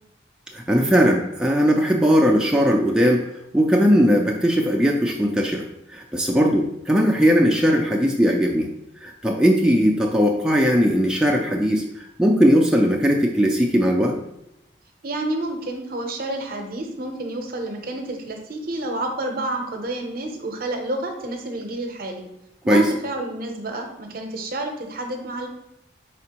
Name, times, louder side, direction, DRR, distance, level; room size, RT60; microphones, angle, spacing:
voice 1, 0.5-3.2 3.5-8.7 9.0-14.2 22.7-22.9, equal, 5° right, -1 dB, 0.3 m, -19 dB
voice 2, 15.0-22.3 22.6-25.5, right 1 dB, 50° right, 4 dB, 0.6 m, -29 dB
4.3 x 4.0 x 2.9 m, 0.86 s
head